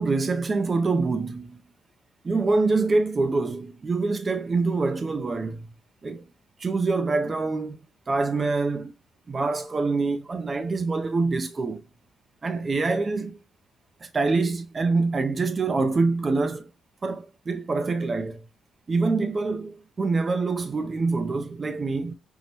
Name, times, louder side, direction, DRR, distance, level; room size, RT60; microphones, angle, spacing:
voice 1, 0.0-1.6 2.2-5.7 6.0-6.2 6.6-7.8 8.1-8.9 9.3-11.8 12.4-13.4 14.0-16.7 17.0-18.4 18.9-22.2, right 3 dB, 35° right, 0.4 m, -25 dB
5.2 x 2.1 x 3.0 m
cardioid pair, 90°, 0 cm